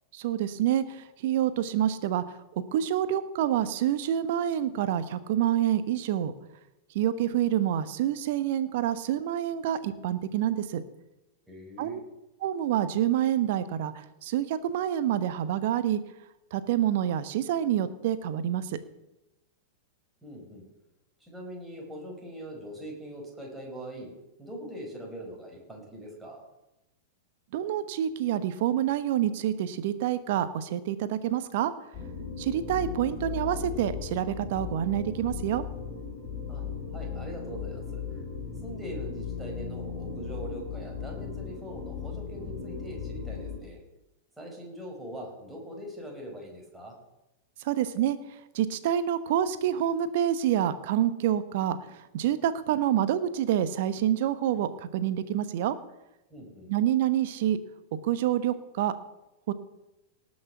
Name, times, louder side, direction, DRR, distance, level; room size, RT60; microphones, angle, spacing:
voice 1, 0.1-6.3 6.9-10.8 11.8-12.0 12.4-16.0 16.5-18.8 27.5-31.7 32.4-35.6 47.6-48.2 48.5-55.8 56.7-57.6 58.0-58.9 59.5-59.6, right 11 dB, 55° right, 13 dB, 1.0 m, -27 dB
voice 2, 11.5-12.0 20.2-20.6 21.2-24.1 24.4-26.5 36.5-38.2 38.6-43.8 44.4-46.9 56.3-56.7, right 1 dB, 5° right, -2 dB, 5.0 m, -42 dB
sound 1, 31.9-43.6, left 6 dB, 40° left, 4.1 m, -37 dB
18.5 x 6.4 x 6.0 m, 0.94 s
figure-of-eight pair, 95°, 0 cm